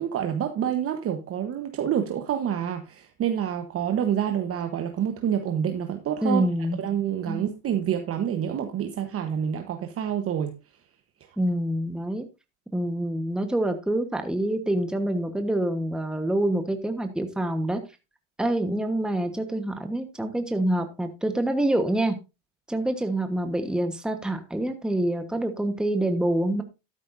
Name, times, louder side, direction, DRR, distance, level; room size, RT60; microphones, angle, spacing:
voice 1, 0.0-6.4 6.8-10.5, right 9 dB, 35° right, 1.2 m, -27 dB
voice 2, 6.2-6.8 7.3-7.4 11.4-12.2 12.7-17.8 18.4-22.2 22.7-26.6, right 1 dB, ahead, 1.2 m, -26 dB
12.5 x 10.0 x 2.6 m
supercardioid pair, 105°, 38 cm